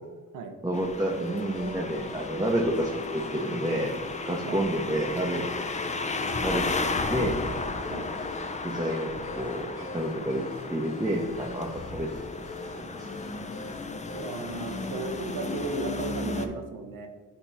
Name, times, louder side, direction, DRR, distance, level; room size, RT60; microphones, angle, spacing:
voice 1, 0.6-3.9 4.2-5.5 6.4-7.4 8.6-13.1, right 1 dB, 10° right, -1 dB, 0.7 m, -30 dB
sound 1, 0.7-16.5, left 3 dB, 20° left, 0.5 m, -34 dB
sound 2, 1.2-16.2, left 3 dB, 70° left, 1.6 m, -47 dB
voice 2, 14.1-17.1, right 4 dB, 85° right, 6 dB, 0.8 m, -35 dB
8.0 x 3.0 x 4.1 m, 1.3 s
cardioid pair, 65°, 33 cm